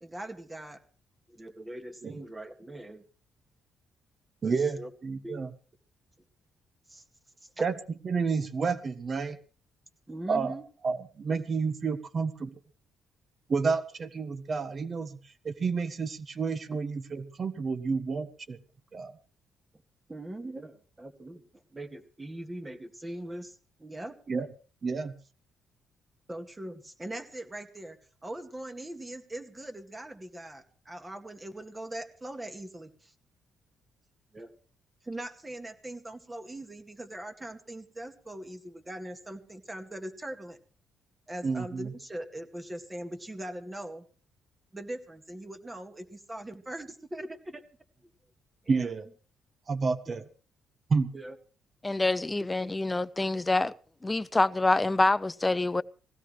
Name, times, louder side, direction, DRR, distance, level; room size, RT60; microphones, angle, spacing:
voice 1, 0.0-0.8 1.3-3.0 4.4-4.9 5.2-5.4 6.9-7.0 7.6-7.7 10.1-10.7 20.1-21.4 21.7-24.1 26.3-33.1 34.3-34.5 35.0-40.6 41.3-44.0 44.7-47.6 48.0-48.1 48.6-48.9 50.1-50.2 51.1-51.4, right 1 dB, 20° right, 2.1 m, -41 dB
voice 2, 4.4-5.5 7.6-7.7 8.0-9.4 10.3-10.5 10.8-12.5 13.5-15.2 15.4-18.6 18.9-19.1 24.3-24.5 24.8-25.1 41.4-41.9 48.7-49.1 49.7-50.2 50.9-51.1, right 4 dB, 40° right, 1.3 m, -30 dB
voice 3, 51.8-53.7 54.0-55.8, left 2 dB, 15° left, 0.6 m, -26 dB
20.0 x 16.0 x 3.3 m
cardioid pair, 90°, 0 cm